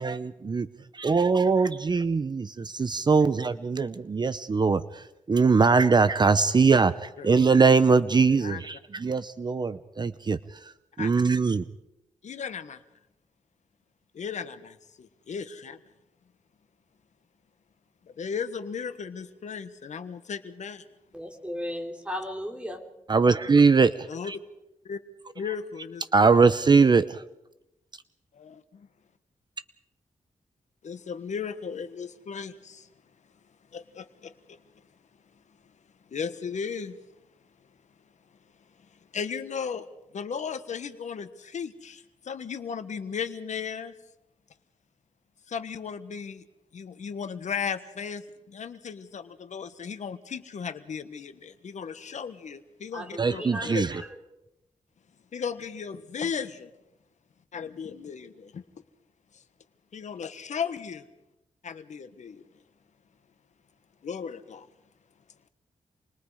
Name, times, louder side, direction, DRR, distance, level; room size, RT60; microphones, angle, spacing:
voice 1, 0.0-0.7 1.0-10.7 11.0-11.6 23.1-24.4 26.1-27.2 53.2-54.0, right 4 dB, 35° right, 0.7 m, -22 dB
voice 2, 12.2-12.8 14.1-15.8 18.2-20.8 24.1-24.3 24.8-25.0 25.3-26.3 28.3-28.9 30.8-32.9 33.7-34.6 36.1-37.0 39.1-39.9 40.1-43.9 45.5-46.4 46.7-53.4 53.7-53.8 55.3-56.7 57.5-58.6 59.3-59.4 59.9-61.0 61.6-62.4 64.0-64.7, left 6 dB, 70° left, 1.5 m, -36 dB
voice 3, 21.1-22.9 52.9-54.2, equal, 10° right, 3.4 m, -36 dB
28.5 x 22.0 x 5.0 m
wide cardioid pair, 115°, 13 cm